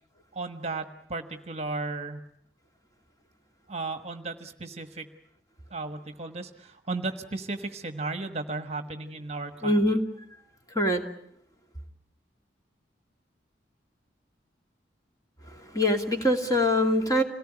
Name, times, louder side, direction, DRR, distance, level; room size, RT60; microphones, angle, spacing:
voice 1, 0.3-2.2 3.7-5.1 5.7-9.8, right 3 dB, 35° right, 8 dB, 1.4 m, -35 dB
voice 2, 9.6-10.0 10.7-11.0 15.5-17.2, left 1 dB, 20° left, 3 dB, 2.6 m, -23 dB
27.5 x 18.5 x 9.9 m, 0.73 s
head